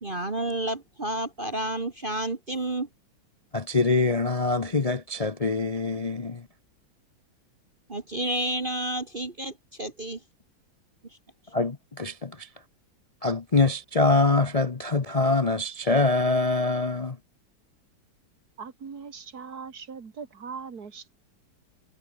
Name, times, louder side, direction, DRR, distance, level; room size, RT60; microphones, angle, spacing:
voice 1, 0.0-2.9 7.9-10.2, right 1 dB, 25° right, 1.7 m, -30 dB
voice 2, 3.5-6.5 11.5-12.5 13.2-17.2, left 3 dB, 65° left, 0.3 m, -24 dB
voice 3, 18.6-21.1, right 5 dB, 50° right, 2.7 m, -40 dB
omnidirectional pair, 2.2 m